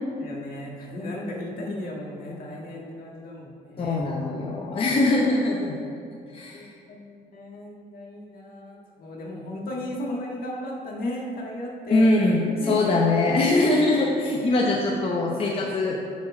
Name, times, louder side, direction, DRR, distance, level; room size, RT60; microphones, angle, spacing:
voice 1, 0.2-4.0 6.5-12.0 12.6-12.8 13.3-13.7, left 1 dB, 60° left, -2 dB, 1.6 m, -35 dB
voice 2, 3.8-5.7 6.3-6.7 11.9-16.0, left 2 dB, 35° left, -2 dB, 0.8 m, -22 dB
7.2 x 4.3 x 6.1 m, 2.5 s
cardioid pair, 110°, 17 cm